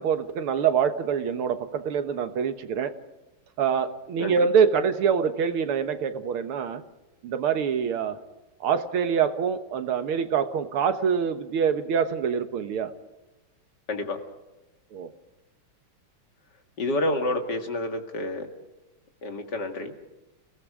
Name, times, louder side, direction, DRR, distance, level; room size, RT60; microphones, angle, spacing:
voice 1, 0.0-3.0 3.6-6.8 7.2-8.2 8.6-12.9 14.9-15.1, right 7 dB, 80° right, 9 dB, 2.1 m, -25 dB
voice 2, 16.8-18.5 19.2-19.9, left 1 dB, 50° left, 5 dB, 2.5 m, -29 dB
30.0 x 18.0 x 4.9 m, 1.0 s
omnidirectional pair, 2.4 m